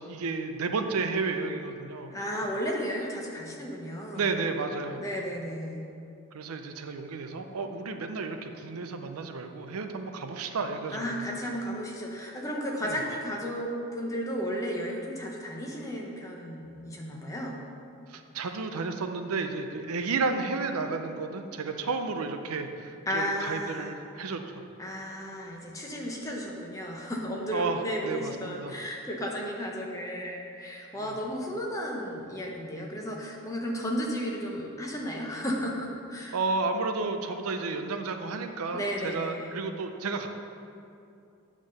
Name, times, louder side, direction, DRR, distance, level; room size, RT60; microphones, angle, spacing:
voice 1, 0.0-2.1 4.1-5.0 6.3-11.2 12.8-13.0 18.1-24.4 27.5-28.7 31.0-31.1 36.3-40.3, right 4 dB, 85° right, 6 dB, 0.6 m, -32 dB
voice 2, 2.1-4.4 5.0-5.8 10.9-17.6 23.1-23.9 24.8-36.4 38.7-39.5, equal, 15° left, -1 dB, 0.8 m, -34 dB
9.0 x 3.7 x 6.5 m, 2.6 s
head